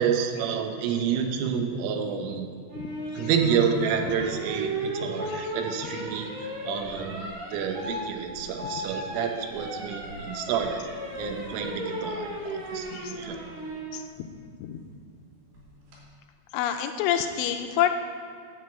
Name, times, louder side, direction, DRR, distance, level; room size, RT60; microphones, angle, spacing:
voice 1, 0.0-2.5 3.2-10.8 11.2-13.4, right 7 dB, 85° right, 4 dB, 3.6 m, -29 dB
sound 1, 2.7-13.9 15.6-16.0, right 1 dB, 70° right, 5.9 m, -36 dB
voice 2, 16.5-17.9, left 10 dB, 80° left, 6 dB, 2.9 m, -27 dB
9.4 x 8.0 x 8.4 m, 2.3 s
omnidirectional pair, 5.7 m